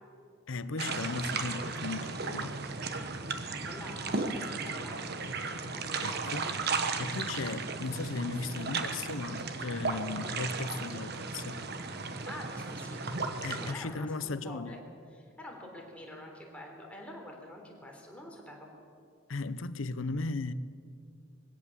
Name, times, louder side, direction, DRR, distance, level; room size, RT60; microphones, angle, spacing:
voice 1, 0.5-2.5 6.0-6.4 7.0-11.6 13.4-14.8 19.3-20.5, left 3 dB, 90° left, 0.8 m, -36 dB
sound 1, 0.8-13.7, right 4 dB, 55° right, 1.3 m, -35 dB
voice 2, 3.4-5.2 5.7-6.3 12.2-14.8 15.1-18.7, left 1 dB, 5° left, 3.6 m, -47 dB
21.5 x 16.5 x 7.3 m
head